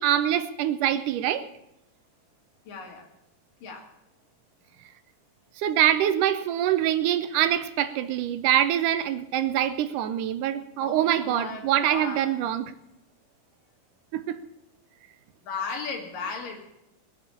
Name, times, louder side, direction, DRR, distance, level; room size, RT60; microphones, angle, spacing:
voice 1, 0.0-1.5 5.6-12.7 14.1-14.4, right 11 dB, 80° right, 2.1 m, -24 dB
voice 2, 2.7-3.1 3.6-3.8 10.8-12.3 15.4-16.6, left 4 dB, 80° left, 3.9 m, -35 dB
20.0 x 7.7 x 7.0 m
omnidirectional pair, 3.8 m